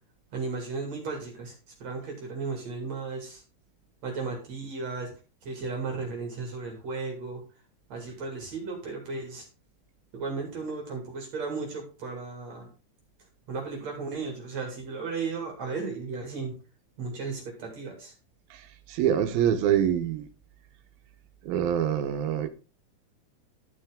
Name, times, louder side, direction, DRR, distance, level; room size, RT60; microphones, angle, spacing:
voice 1, 0.3-1.5 1.8-3.4 4.0-5.1 5.4-7.4 7.9-9.4 10.1-12.7 13.5-16.5 17.0-18.1, right 4 dB, 50° right, 3.3 m, -35 dB
voice 2, 18.9-20.3 21.5-22.5, right 9 dB, 75° right, 2.7 m, -25 dB
12.5 x 6.2 x 3.7 m
omnidirectional pair, 4.4 m